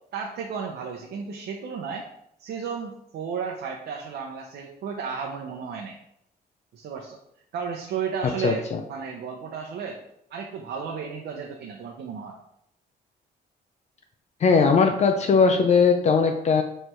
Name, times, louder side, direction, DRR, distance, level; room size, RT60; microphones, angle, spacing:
voice 1, 0.1-2.0 2.4-6.0 6.7-7.2 7.5-10.0 10.3-12.4, right 6 dB, 75° right, 0 dB, 0.8 m, -33 dB
voice 2, 8.2-8.8 14.4-16.6, left 5 dB, 40° left, 5 dB, 0.5 m, -19 dB
6.4 x 3.4 x 4.5 m, 0.74 s
cardioid pair, 175°, 17 cm